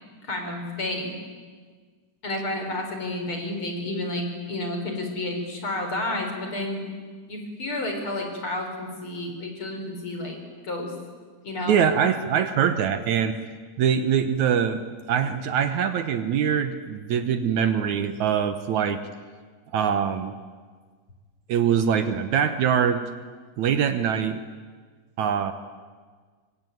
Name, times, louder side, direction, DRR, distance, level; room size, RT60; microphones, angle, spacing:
voice 1, 0.3-1.1 2.2-6.8 7.3-10.4 10.6-10.9 11.4-11.8, left 1 dB, 40° left, 3 dB, 5.0 m, -30 dB
voice 2, 11.7-13.3 13.8-14.8 15.1-19.0 19.7-20.3 21.5-23.0 23.6-24.4 25.2-25.5, right 8 dB, 70° right, 10 dB, 2.3 m, -23 dB
25.0 x 24.0 x 9.3 m, 1.5 s
omnidirectional pair, 3.7 m